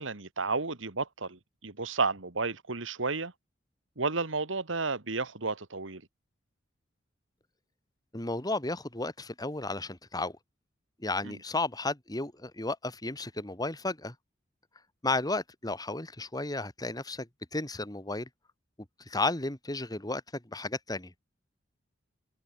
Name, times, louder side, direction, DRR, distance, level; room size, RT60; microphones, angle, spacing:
voice 1, 0.0-3.3 4.0-6.0 11.2-11.4, right 4 dB, 80° right, 2.0 m, -32 dB
voice 2, 8.1-10.4 11.0-14.2 15.0-18.3 19.1-21.1, left 2 dB, 20° left, 2.0 m, -33 dB
head